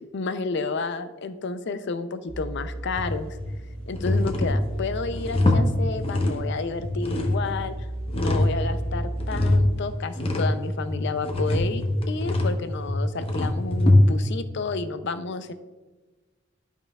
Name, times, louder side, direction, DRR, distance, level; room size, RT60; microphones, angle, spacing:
voice 1, 0.1-3.4 3.9-7.7 8.1-15.5, left 4 dB, 55° left, 11 dB, 0.5 m, -31 dB
sound 1, 2.3-9.7, right 1 dB, 75° right, 1.1 m, -35 dB
sound 2, 3.0-3.5 3.9-6.5 6.8-8.6 8.9-14.4, left 1 dB, 30° left, 0.8 m, -23 dB
11.5 x 5.6 x 2.3 m, 1.3 s
head